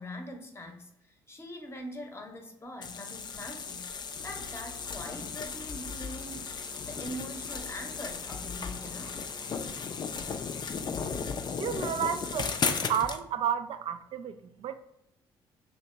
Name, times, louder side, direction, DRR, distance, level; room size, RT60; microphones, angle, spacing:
voice 1, 0.0-6.4 6.9-9.2, left 1 dB, 20° left, 0.8 m, -43 dB
sound 1, 2.8-13.2, left 5 dB, 35° left, 0.4 m, -35 dB
sound 2, 4.1-9.9, left 4 dB, 90° left, 0.7 m, -51 dB
voice 2, 11.6-14.8, right 8 dB, 50° right, 0.4 m, -32 dB
2.8 x 2.7 x 4.3 m
hypercardioid pair, 50°, 12 cm